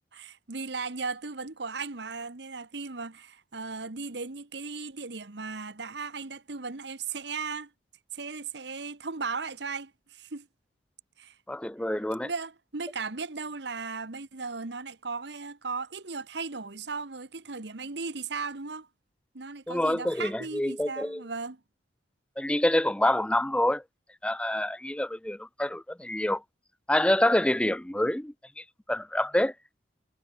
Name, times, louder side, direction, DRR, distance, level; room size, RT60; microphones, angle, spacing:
voice 1, 0.0-7.7 8.1-10.5 11.2-11.3 12.2-18.9 19.3-21.6, right 4 dB, 65° right, 1.3 m, -36 dB
voice 2, 11.5-12.3 19.7-21.2 22.4-23.8 24.2-26.4 26.9-29.5, left 1 dB, 5° left, 0.5 m, -27 dB
head